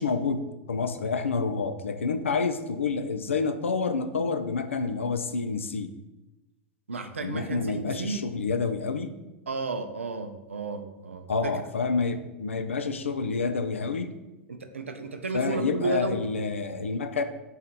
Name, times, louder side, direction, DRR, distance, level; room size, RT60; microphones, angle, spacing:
voice 1, 0.0-5.9 7.2-9.1 11.3-14.1 15.3-17.2, left 4 dB, 75° left, 9 dB, 0.4 m, -28 dB
voice 2, 6.9-8.5 9.5-11.5 14.5-16.3, right 4 dB, 75° right, 7 dB, 0.4 m, -33 dB
3.9 x 3.0 x 4.0 m, 1.0 s
figure-of-eight pair, 95°, 7 cm